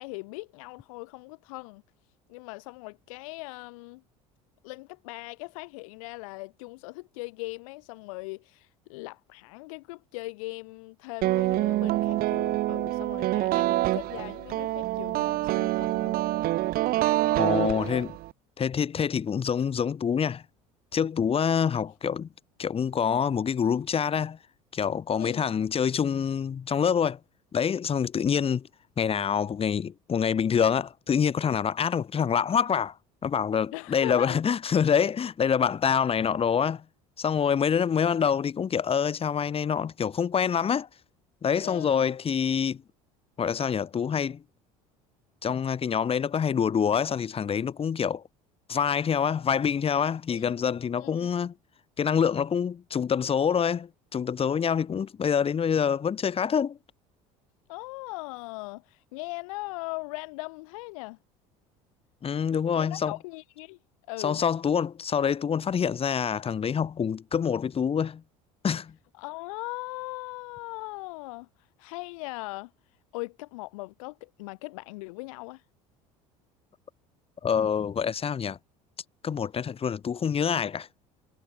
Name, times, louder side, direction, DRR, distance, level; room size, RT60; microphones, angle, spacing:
voice 1, 0.0-1.8 2.3-4.0 4.6-16.2 17.7-18.0 25.2-25.4 33.7-34.4 41.6-42.1 50.3-50.5 51.0-51.3 57.7-61.2 62.7-63.8 64.1-64.4 69.2-72.7 73.1-75.6, left 25 dB, 80° left, 2.0 m, -39 dB
sound 1, 11.2-18.3, right 16 dB, 60° right, 2.0 m, -26 dB
voice 2, 17.4-18.1 18.6-20.4 20.9-22.3 22.6-24.4 24.7-27.2 27.5-28.7 29.0-32.9 33.2-36.8 37.2-40.9 41.4-42.8 43.4-44.4 45.4-48.2 48.7-51.5 52.0-56.8 62.2-63.1 64.2-68.2 68.6-68.9 77.4-78.6 79.2-80.9, left 7 dB, 35° left, 1.8 m, -26 dB
supercardioid pair, 80°, 17 cm